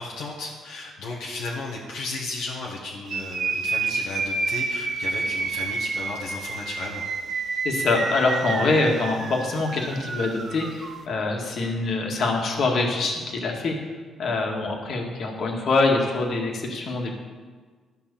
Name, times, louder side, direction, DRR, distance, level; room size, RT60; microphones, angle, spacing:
voice 1, 0.0-7.0, left 3 dB, 85° left, -3 dB, 1.4 m, -34 dB
sound 1, 3.1-11.0, right 4 dB, 60° right, 1.2 m, -29 dB
voice 2, 7.6-13.8 14.2-17.1, left 3 dB, 60° left, 0 dB, 2.0 m, -24 dB
12.5 x 5.6 x 7.0 m, 1.5 s
cardioid pair, 90°, 0 cm